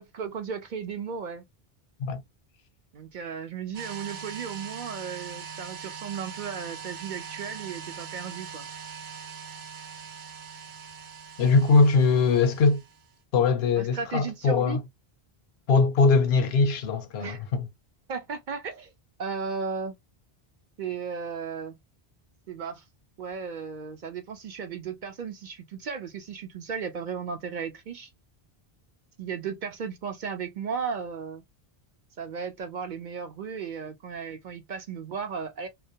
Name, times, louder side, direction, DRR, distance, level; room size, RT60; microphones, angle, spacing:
voice 1, 0.0-1.4 2.9-8.7 13.8-14.8 17.2-17.4 18.1-18.9 19.2-20.0 20.8-21.8 22.5-22.8 23.2-28.1 29.2-31.4 32.2-35.7, right 6 dB, 55° right, 0.6 m, -35 dB
sound 1, 3.7-13.1, right 6 dB, 90° right, 0.9 m, -41 dB
voice 2, 11.4-12.8 13.3-14.8 15.7-17.7, left 4 dB, 80° left, 0.8 m, -21 dB
2.1 x 2.1 x 2.7 m
omnidirectional pair, 1.0 m